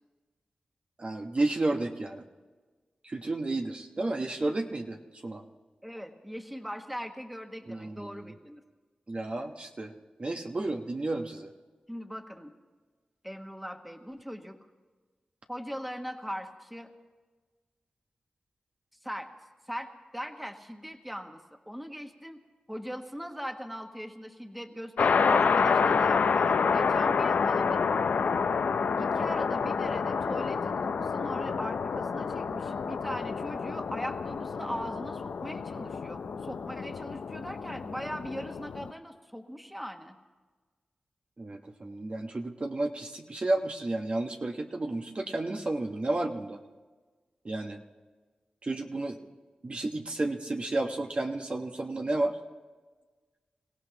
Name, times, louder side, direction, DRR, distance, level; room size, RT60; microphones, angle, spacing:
voice 1, 1.0-2.2 3.0-5.0 5.2-5.4 7.7-8.3 9.1-9.9 10.2-11.5 41.4-46.6 47.4-47.8 48.6-49.2 49.6-52.4, right 2 dB, 45° right, 3 dB, 1.2 m, -32 dB
voice 2, 5.8-8.6 11.9-12.5 13.2-14.6 15.5-16.9 19.0-19.3 19.7-22.4 22.7-27.8 29.0-40.1, equal, 5° right, 5 dB, 1.5 m, -40 dB
sound 1, 25.0-38.9, left 5 dB, 80° left, 0.6 m, -28 dB
28.0 x 16.5 x 2.9 m, 1.4 s
cardioid pair, 45°, 3 cm